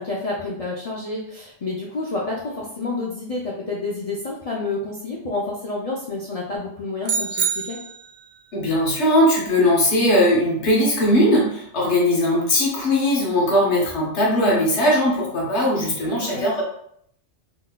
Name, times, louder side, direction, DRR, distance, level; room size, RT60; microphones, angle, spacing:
voice 1, 0.0-7.8 16.0-16.5, left 3 dB, 45° left, -5 dB, 0.5 m, -29 dB
sound 1, 7.0-8.4, right 6 dB, 55° right, 0.5 m, -26 dB
voice 2, 8.5-16.6, left 1 dB, 70° left, -3 dB, 1.2 m, -19 dB
3.8 x 2.6 x 2.2 m, 0.70 s
omnidirectional pair, 1.2 m